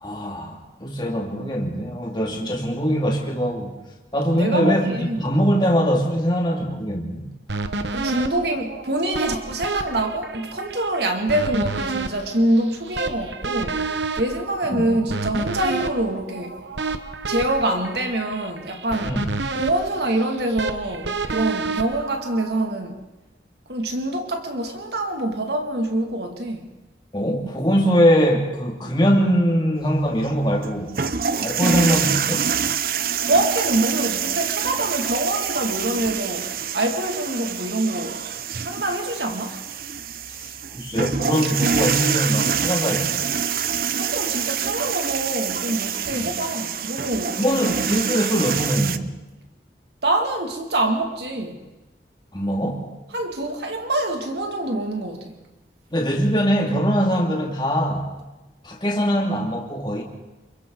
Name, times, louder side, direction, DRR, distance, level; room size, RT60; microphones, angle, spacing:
voice 1, 0.0-3.7 4.1-7.3 14.7-14.9 19.1-19.4 27.1-30.9 31.4-32.5 40.4-40.5 40.7-43.1 46.1-46.3 47.4-49.1 52.3-52.9 55.9-58.1 58.6-60.0, equal, 25° left, 0 dB, 2.5 m, -22 dB
voice 2, 4.3-5.2 7.9-13.9 14.2-16.6 17.3-19.2 19.5-23.0 23.7-26.7 32.6-32.8 33.2-38.2 38.6-39.6 44.0-47.4 50.0-51.6 53.1-55.4, right 1 dB, 75° right, 3 dB, 2.5 m, -25 dB
sound 1, 7.5-22.7, right 3 dB, 90° right, 1.1 m, -30 dB
sound 2, 29.8-49.0, right 7 dB, 55° right, 0.6 m, -26 dB
27.5 x 23.5 x 4.0 m, 1.1 s
head